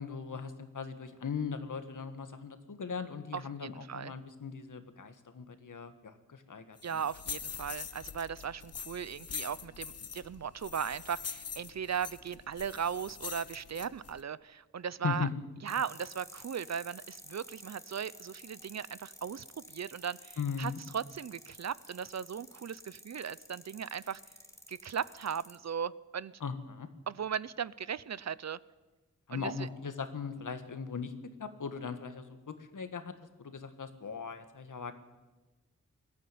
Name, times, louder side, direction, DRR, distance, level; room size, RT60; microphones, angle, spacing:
voice 1, 0.0-7.0 15.0-15.3 20.4-20.8 26.4-26.9 29.3-31.1 31.4-33.1 33.4-34.9, left 6 dB, 70° left, 9 dB, 1.8 m, -39 dB
voice 2, 3.3-4.1 6.8-15.3 15.6-24.2 24.7-26.3 27.1-28.6 29.3-29.7, right 7 dB, 55° right, 19 dB, 0.6 m, -37 dB
sound 1, 6.8-14.2, left 6 dB, 50° left, 0.8 m, -44 dB
sound 2, 15.7-25.6, left 1 dB, 10° left, 2.1 m, -53 dB
21.0 x 14.5 x 9.4 m, 1.2 s
wide cardioid pair, 95°, 32 cm